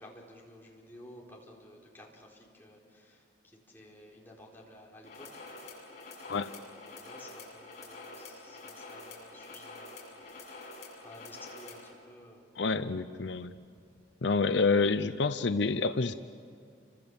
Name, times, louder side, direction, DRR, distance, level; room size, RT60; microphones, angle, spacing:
voice 1, 0.0-5.9 6.3-12.5 13.3-13.9, left 1 dB, 10° left, -3 dB, 4.5 m, -54 dB
sound 1, 5.0-11.9, left 3 dB, 40° left, 7.4 m, -47 dB
voice 2, 12.6-13.5 14.2-16.1, left 4 dB, 70° left, 11 dB, 0.7 m, -28 dB
30.0 x 26.0 x 7.1 m, 2.3 s
head